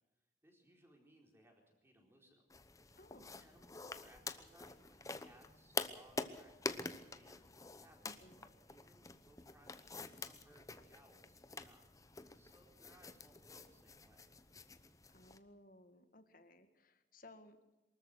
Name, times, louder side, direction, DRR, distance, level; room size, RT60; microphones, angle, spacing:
voice 1, 0.4-2.4 3.1-14.3, right 1 dB, 15° right, 1 dB, 4.2 m, -67 dB
sound 1, 2.5-15.4, left 3 dB, 20° left, 0.9 m, -47 dB
voice 2, 3.0-3.3 8.0-8.5 15.1-17.6, left 1 dB, 50° left, 8 dB, 1.9 m, -60 dB
23.5 x 14.0 x 7.9 m, 1.0 s
head